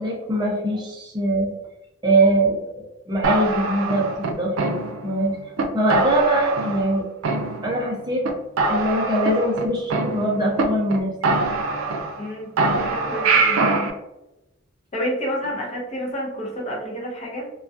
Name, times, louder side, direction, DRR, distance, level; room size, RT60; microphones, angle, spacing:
voice 1, 0.0-1.5 2.0-4.7 5.0-5.4 5.7-7.1 7.3-8.3 8.7-11.4, right 1 dB, 20° right, -3 dB, 0.5 m, -22 dB
sound 1, 3.2-5.2 5.6-5.7 5.9-6.9 7.2-7.9 8.2-8.3 8.6-10.6 10.9-11.0 11.2-12.3 12.6-13.9, right 3 dB, 85° right, 0.4 m, -23 dB
voice 2, 12.2-13.9 14.9-17.5, equal, 30° left, -2 dB, 0.6 m, -29 dB
2.3 x 2.2 x 2.5 m, 0.94 s
head